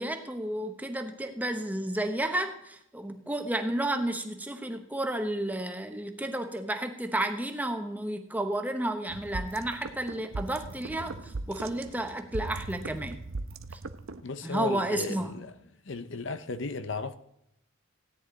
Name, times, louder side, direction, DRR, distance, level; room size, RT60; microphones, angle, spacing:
voice 1, 0.0-13.2 13.7-13.8 14.4-15.3, right 1 dB, 10° right, 1.0 m, -32 dB
sound 1, 9.1-14.2, right 3 dB, 75° right, 0.7 m, -39 dB
voice 2, 14.2-15.5 15.9-17.2, left 3 dB, 65° left, 0.8 m, -35 dB
16.5 x 9.9 x 4.0 m
head